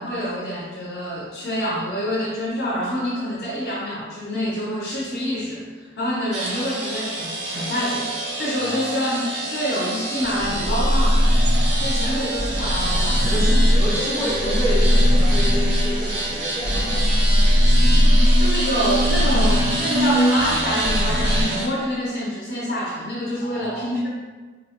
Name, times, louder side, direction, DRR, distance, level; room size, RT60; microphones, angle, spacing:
voice 1, 0.0-9.2 9.5-11.3 11.7-13.7 14.2-14.6 18.4-24.1, equal, 65° left, -6 dB, 0.7 m, -26 dB
sound 1, 6.3-21.7, right 2 dB, 80° right, 0.6 m, -28 dB
voice 2, 8.6-9.0 13.2-17.5 23.4-24.0, equal, 15° left, -9 dB, 0.5 m, -30 dB
sound 2, 10.2-16.3 16.6-21.4, equal, 35° right, 0.4 m, -19 dB
4.0 x 2.0 x 2.8 m, 1.4 s
head